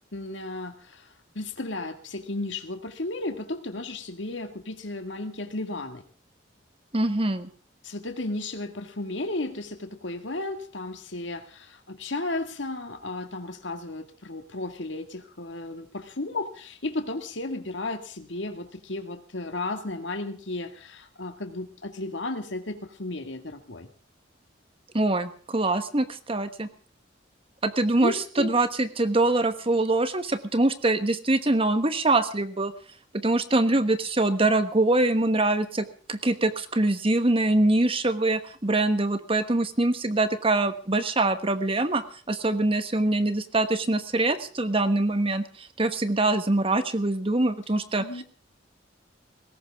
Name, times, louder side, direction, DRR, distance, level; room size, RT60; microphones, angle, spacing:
voice 1, 0.1-6.0 7.8-23.9 28.0-28.5 48.0-48.2, left 2 dB, 70° left, 6 dB, 2.0 m, -34 dB
voice 2, 6.9-7.5 24.9-26.7 27.6-32.7 33.1-48.2, right 2 dB, 30° right, 10 dB, 1.3 m, -24 dB
19.5 x 17.0 x 3.6 m, 0.41 s
head